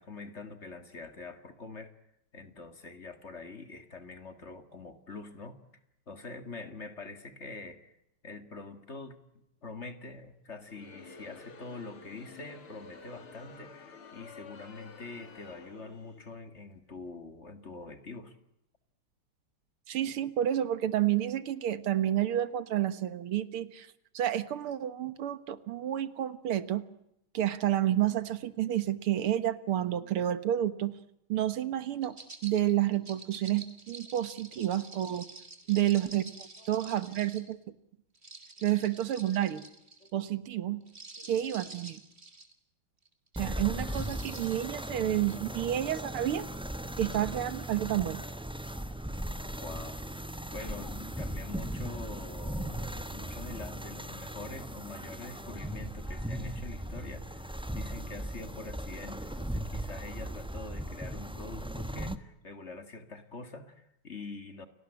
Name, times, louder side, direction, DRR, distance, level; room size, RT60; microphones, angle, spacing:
voice 1, 0.0-1.9 2.3-5.6 6.1-7.9 8.2-18.4 35.7-35.8 36.6-36.7 39.3-39.4 40.0-40.1 41.2-41.3 46.0-46.1 46.8-47.1 49.4-50.0 50.5-64.7, left 3 dB, 35° left, 9 dB, 2.1 m, -45 dB
Crowd, 10.6-16.3, left 4 dB, 85° left, 3.5 m, -50 dB
voice 2, 19.9-23.9 24.1-26.8 27.3-30.9 31.3-32.2 32.4-35.3 35.7-37.6 38.6-39.6 40.1-40.8 41.3-42.0 43.3-46.5 47.0-48.2, right 12 dB, 85° right, 14 dB, 2.2 m, -30 dB
sound 1, 32.0-37.5 38.1-40.1 40.8-42.5 43.0-43.3 43.8-44.7 45.3-45.4, right 3 dB, 30° right, 3.2 m, -49 dB
sound 2, 43.4-62.2, right 1 dB, 5° right, 0.7 m, -38 dB
29.5 x 19.0 x 9.8 m, 0.80 s
omnidirectional pair, 2.3 m